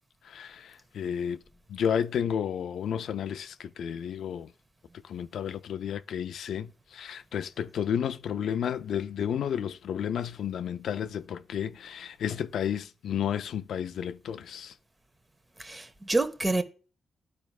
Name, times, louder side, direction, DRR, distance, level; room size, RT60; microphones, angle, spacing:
voice 1, 0.3-1.4 1.7-4.5 5.1-14.7, left 8 dB, 80° left, 0.4 m, -32 dB
voice 2, 15.6-16.6, right 2 dB, 25° right, 1.0 m, -27 dB
12.5 x 4.5 x 2.4 m
cardioid pair, 65°, 0 cm